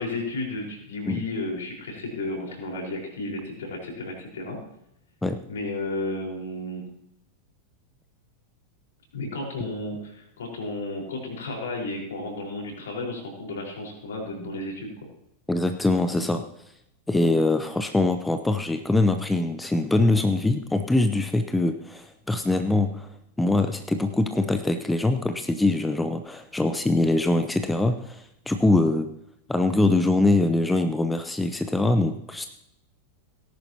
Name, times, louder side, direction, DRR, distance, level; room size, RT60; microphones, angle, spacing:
voice 1, 0.0-4.6 5.5-6.8 9.1-15.1, left 2 dB, 65° left, 0 dB, 4.4 m, -33 dB
voice 2, 15.5-16.5 17.1-29.1 29.5-32.5, left 2 dB, 5° left, 8 dB, 0.7 m, -23 dB
18.0 x 11.0 x 2.9 m, 0.79 s
figure-of-eight pair, 90°, 0 cm